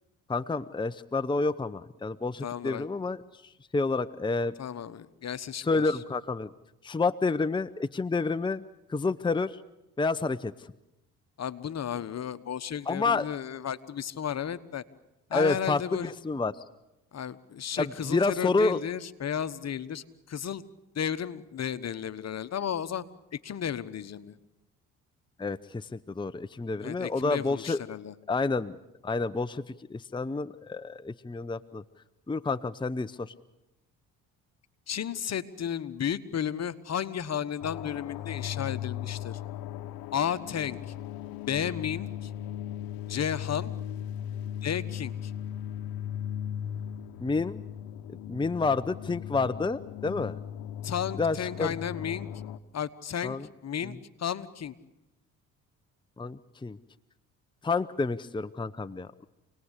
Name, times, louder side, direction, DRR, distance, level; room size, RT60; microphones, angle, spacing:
voice 1, 0.3-4.5 5.6-6.5 6.8-8.6 8.9-9.6 10.0-10.5 12.9-13.2 15.3-16.5 17.8-18.8 25.4-27.8 28.3-28.8 29.0-31.8 32.3-33.3 47.2-47.6 48.3-50.4 51.2-51.7 53.2-53.5 53.8-54.0 56.2-56.8 57.6-59.3, left 3 dB, 15° left, 11 dB, 0.8 m, -29 dB
voice 2, 2.4-2.9 4.6-6.0 11.4-14.8 15.3-16.1 17.1-20.6 20.9-23.0 23.3-24.4 26.8-28.1 34.9-39.4 40.1-40.8 41.4-42.3 43.1-43.7 44.6-45.3 50.8-52.3 52.7-53.4 53.6-54.7, left 8 dB, 50° left, 13 dB, 1.3 m, -33 dB
sound 1, 37.6-52.6, left 10 dB, 80° left, 0.9 m, -37 dB
28.0 x 19.0 x 8.3 m, 0.94 s
supercardioid pair, 65°, 35 cm